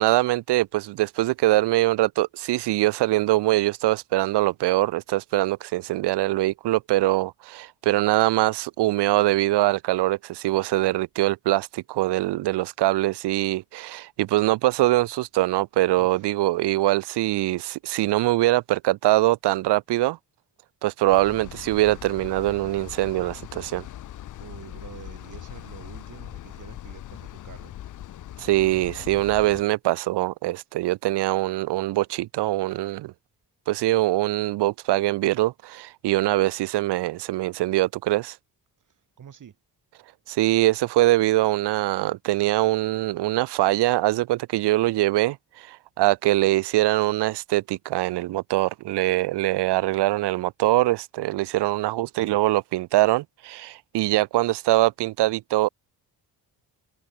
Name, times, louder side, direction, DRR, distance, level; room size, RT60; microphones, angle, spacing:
voice 1, 0.0-20.2 20.8-23.8 28.4-33.1 33.7-38.4 40.3-55.7, right 17 dB, 75° right, 0.5 m, -23 dB
sound 1, 21.1-29.6, left 12 dB, 50° left, 0.5 m, -40 dB
voice 2, 24.4-27.7 39.2-39.6, right 8 dB, 50° right, 1.7 m, -46 dB
cardioid pair, 130°, 41 cm